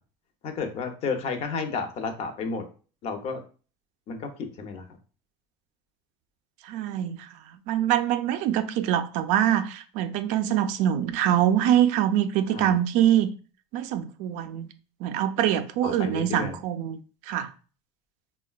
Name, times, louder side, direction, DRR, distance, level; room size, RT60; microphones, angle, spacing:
voice 1, 0.4-2.7 3.0-3.4 4.1-4.9 12.5-12.8 15.8-16.6, left 5 dB, 50° left, 0.7 m, -32 dB
voice 2, 6.6-7.3 7.7-13.3 13.7-14.7 15.0-17.0 17.3-17.5, right 11 dB, 65° right, 0.4 m, -24 dB
3.5 x 2.2 x 2.3 m
supercardioid pair, 125°, 13 cm